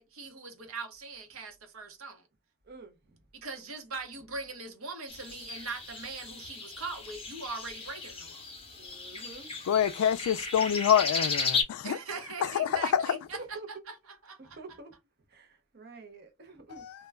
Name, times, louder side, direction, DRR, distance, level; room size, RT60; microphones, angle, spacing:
voice 1, 0.0-2.3 3.3-8.4 11.8-13.6 13.9-14.0 14.2-14.6, right 4 dB, 80° right, 0.9 m, -41 dB
voice 2, 2.6-3.2 8.7-9.6 12.6-12.8 13.3-13.7 14.4-14.9 15.3-16.9, right 3 dB, 45° right, 0.7 m, -47 dB
sound 1, 5.1-11.6, left 4 dB, 25° left, 0.6 m, -35 dB
voice 3, 9.7-12.0 12.4-13.2 16.8-16.9, left 9 dB, 90° left, 0.3 m, -26 dB
2.2 x 2.1 x 3.4 m
head